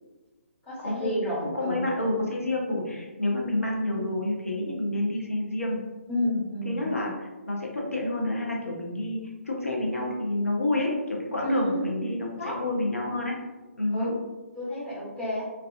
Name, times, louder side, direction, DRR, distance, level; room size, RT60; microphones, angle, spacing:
voice 1, 0.6-1.8 6.1-6.9 11.4-11.8 12.4-12.6 13.9-14.1 14.5-15.4, equal, 10° left, -12 dB, 0.9 m, -30 dB
voice 2, 1.4-5.8 6.6-13.4 13.8-14.1, left 1 dB, 75° left, -2 dB, 0.5 m, -29 dB
2.3 x 2.3 x 2.3 m, 1.2 s
figure-of-eight pair, 140°, 8 cm